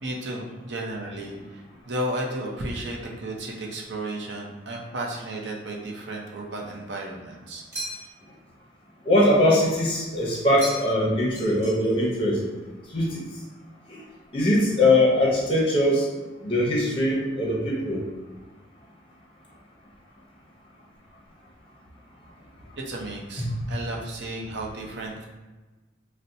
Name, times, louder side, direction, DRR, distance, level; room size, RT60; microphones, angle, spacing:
voice 1, 0.0-8.1 22.8-25.3, right 1 dB, 65° right, -1 dB, 0.6 m, -34 dB
sound 1, 7.7-8.3 10.6-11.1 11.3-12.1, right 1 dB, 15° right, 1.0 m, -37 dB
voice 2, 9.0-12.4 12.9-13.2 14.3-16.1 16.4-18.0 23.4-23.7, left 1 dB, 30° left, -3 dB, 0.7 m, -21 dB
4.1 x 2.1 x 2.6 m, 1.2 s
head